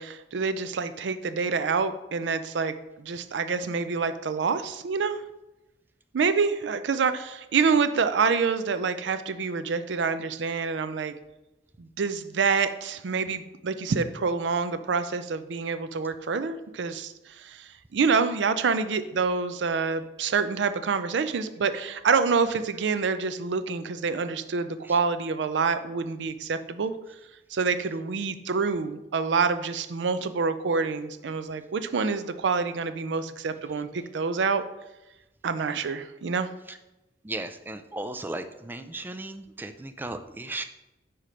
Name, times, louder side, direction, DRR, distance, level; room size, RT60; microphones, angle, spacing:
voice 1, 0.0-5.2 6.1-11.1 11.8-26.9 27.5-34.6 35.4-36.5, right 5 dB, 80° right, 11 dB, 0.4 m, -27 dB
voice 2, 37.2-40.6, right 2 dB, 10° right, 8 dB, 0.3 m, -36 dB
4.9 x 4.3 x 5.1 m, 0.96 s
head